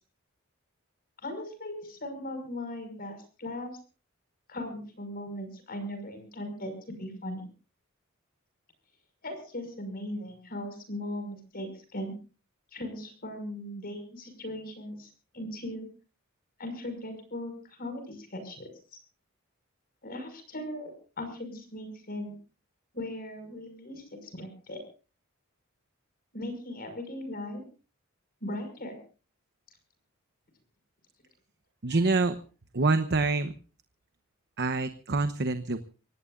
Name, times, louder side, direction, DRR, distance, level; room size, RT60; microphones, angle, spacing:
voice 1, 1.2-3.7 4.5-7.4 9.2-12.1 12.7-15.9 16.6-18.7 20.0-20.9 21.2-22.4 22.9-24.8 26.3-27.6 28.4-29.0, left 1 dB, 45° left, 7 dB, 5.7 m, -38 dB
voice 2, 31.8-32.3 32.7-33.5 34.6-35.8, right 3 dB, 55° right, 9 dB, 1.0 m, -26 dB
25.5 x 18.5 x 2.5 m, 0.37 s
head